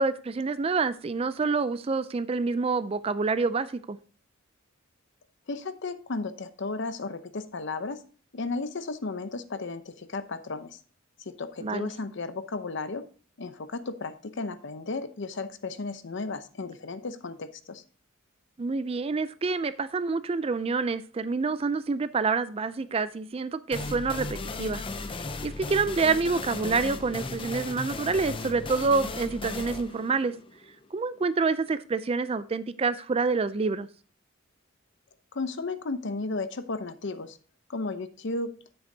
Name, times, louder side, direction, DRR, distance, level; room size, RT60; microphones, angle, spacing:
voice 1, 0.0-4.0 11.6-11.9 18.6-24.8 25.4-30.3 30.9-33.9, right 4 dB, 30° right, 0.4 m, -27 dB
voice 2, 5.5-8.0 8.3-10.8 11.2-13.0 13.4-17.8 35.3-37.4 37.7-38.5, left 3 dB, 60° left, 0.8 m, -34 dB
sound 1, 23.7-31.2, left 3 dB, 25° left, 0.5 m, -36 dB
9.4 x 7.9 x 2.7 m
head